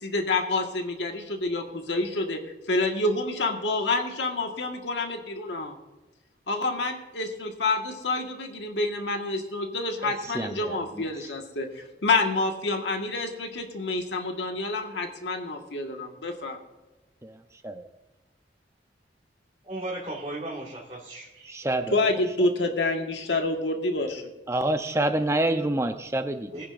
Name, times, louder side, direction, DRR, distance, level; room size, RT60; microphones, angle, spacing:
voice 1, 0.0-2.4 2.7-5.7 6.5-16.6 21.9-24.2, left 2 dB, 80° left, 3 dB, 1.7 m, -28 dB
voice 2, 10.0-11.1 17.2-17.4 17.6-17.9 21.4-22.1 22.4-22.5 24.5-26.6, right 1 dB, 15° right, 7 dB, 0.7 m, -28 dB
voice 3, 19.6-21.5 26.5-26.6, right 1 dB, 30° right, -3 dB, 2.0 m, -36 dB
21.5 x 10.0 x 2.6 m, 1.1 s
head